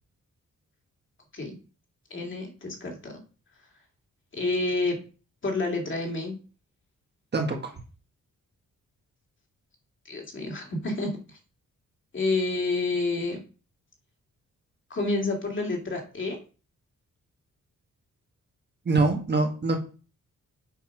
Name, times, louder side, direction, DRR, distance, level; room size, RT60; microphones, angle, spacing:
voice 1, 2.1-3.1 4.3-5.0 5.4-6.4 10.0-11.4 12.1-13.4 14.9-16.4, left 2 dB, 40° left, 1 dB, 2.8 m, -29 dB
voice 2, 7.3-7.7 18.8-19.8, right 3 dB, 35° right, 3 dB, 1.6 m, -24 dB
8.4 x 5.6 x 6.0 m, 0.36 s
wide cardioid pair, 170°, 31 cm